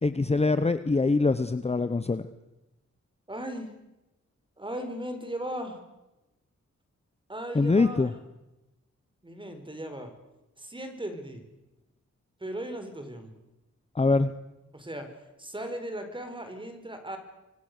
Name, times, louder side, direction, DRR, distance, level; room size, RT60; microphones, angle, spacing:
voice 1, 0.0-2.3 7.5-8.1 13.9-14.3, left 3 dB, 20° left, 12 dB, 0.9 m, -24 dB
voice 2, 3.3-3.7 4.6-5.8 7.3-8.1 9.2-10.1 10.6-11.4 12.4-13.3 14.7-15.1 15.4-17.2, right 1 dB, 15° right, 7 dB, 4.5 m, -37 dB
26.0 x 25.0 x 6.8 m, 0.97 s
wide cardioid pair, 120°, 30 cm